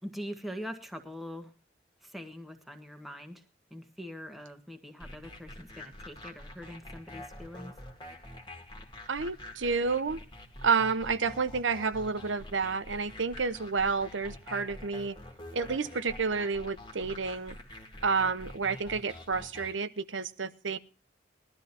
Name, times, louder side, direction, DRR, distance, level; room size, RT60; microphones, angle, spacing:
voice 1, 0.0-1.5 2.0-3.4 3.7-7.7, equal, ahead, 5 dB, 1.5 m, -43 dB
sound 1, 5.0-19.7, left 1 dB, 25° left, 2.1 m, -47 dB
voice 2, 9.1-10.2 10.6-15.2 15.5-17.6 18.0-20.8, right 5 dB, 90° right, 12 dB, 0.9 m, -30 dB
21.0 x 12.5 x 2.8 m, 0.31 s
head